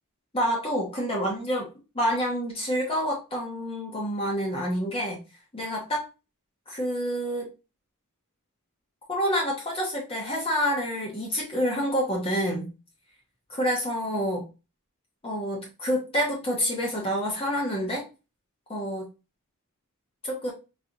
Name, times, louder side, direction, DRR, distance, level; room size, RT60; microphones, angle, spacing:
voice 1, 0.3-1.7 1.9-5.2 5.5-6.0 6.7-7.5 9.1-12.7 13.6-14.5 15.2-18.0 18.7-19.1 20.2-20.5, equal, 25° left, -2 dB, 1.1 m, -28 dB
4.3 x 3.2 x 2.6 m, 0.29 s
head